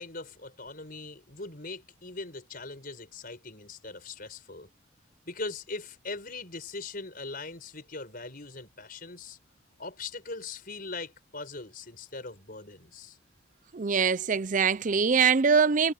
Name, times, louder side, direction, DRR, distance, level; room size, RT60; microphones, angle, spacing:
voice 1, 0.0-4.7 5.3-9.4 9.8-13.2, left 3 dB, 45° left, 5.9 m, -40 dB
voice 2, 13.7-15.9, right 6 dB, 40° right, 0.5 m, -23 dB
head